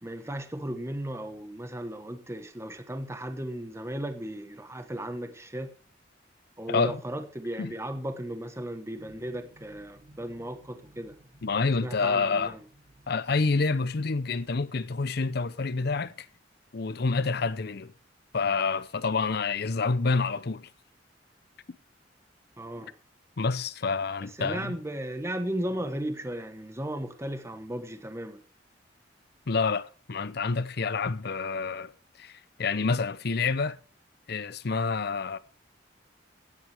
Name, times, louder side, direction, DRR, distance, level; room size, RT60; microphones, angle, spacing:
voice 1, 0.0-5.7 6.6-11.1 11.8-12.6 22.6-22.9 24.4-28.4, right 1 dB, 15° right, 1.2 m, -35 dB
voice 2, 6.7-7.0 7.6-7.7 11.4-12.5 13.1-16.1 16.7-17.9 18.3-20.7 23.4-24.7 29.5-31.9 32.2-33.8 34.3-35.4, left 4 dB, 55° left, 0.7 m, -28 dB
sound 1, 9.0-14.5, right 1 dB, 50° right, 1.8 m, -57 dB
16.0 x 9.5 x 3.4 m
head